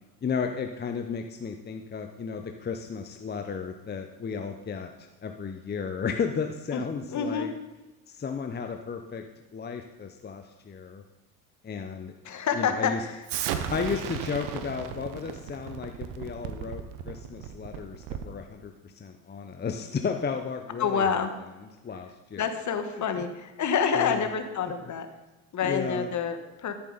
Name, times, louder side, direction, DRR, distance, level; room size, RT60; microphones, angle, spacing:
voice 1, 0.2-7.5 8.1-9.3 9.5-11.0 11.6-12.1 12.6-13.0 13.7-21.1 21.8-22.4 23.9-24.3 25.6-26.1, left 6 dB, 25° left, 5 dB, 0.8 m, -33 dB
voice 2, 7.1-7.5 12.2-13.2 20.8-21.3 22.3-25.1 25.5-26.7, left 6 dB, 45° left, 7 dB, 1.4 m, -28 dB
Explosion, 13.3-18.4, right 9 dB, 70° right, 1.0 m, -35 dB
13.5 x 7.2 x 4.1 m, 1.1 s
hypercardioid pair, 70°, 41 cm